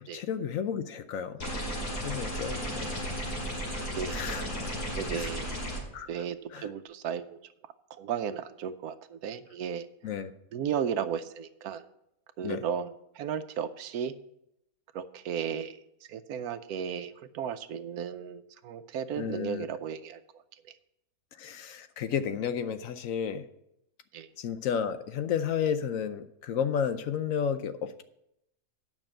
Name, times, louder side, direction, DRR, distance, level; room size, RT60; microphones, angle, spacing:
voice 1, 0.0-1.4 1.8-2.9 4.1-4.4 5.2-5.3 5.9-6.1 6.5-6.7 10.0-10.3 12.4-12.6 19.2-19.6 21.4-23.5 24.4-28.0, left 7 dB, 70° left, 11 dB, 1.0 m, -32 dB
sound 1, 1.4-5.8, equal, 90° left, 3.0 m, -34 dB
voice 2, 2.3-2.8 3.7-5.5 6.1-9.9 10.5-11.9 12.4-14.2 14.9-15.8 16.1-20.4 24.1-24.3, right 8 dB, 80° right, 12 dB, 1.1 m, -35 dB
9.0 x 6.1 x 7.5 m, 0.80 s
omnidirectional pair, 1.6 m